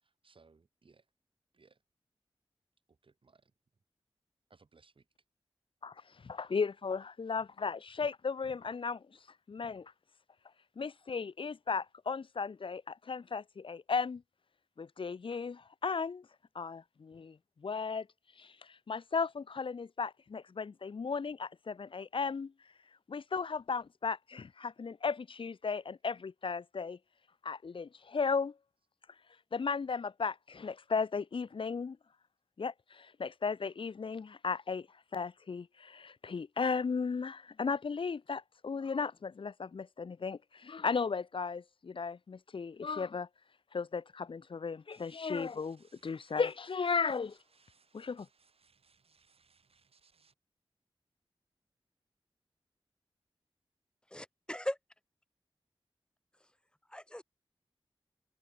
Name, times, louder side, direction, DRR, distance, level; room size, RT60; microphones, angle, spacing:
voice 1, 0.0-1.0 1.5-1.8 2.9-3.5 4.5-5.1, right 4 dB, 60° right, 6.9 m, -64 dB
voice 2, 6.2-9.0 9.5-9.9 10.8-14.2 14.8-16.3 16.5-17.4 17.6-18.1 18.4-22.5 23.1-27.0 27.4-28.5 29.5-32.0 32.6-34.9 35.1-43.3 43.7-47.4 47.9-48.3, left 5 dB, 60° left, 0.7 m, -35 dB
sound 1, 44.9-50.3, right 5 dB, 80° right, 5.9 m, -69 dB
voice 3, 54.1-54.8 56.9-57.2, left 1 dB, 10° left, 2.0 m, -38 dB
open air
wide cardioid pair, 95°, 10 cm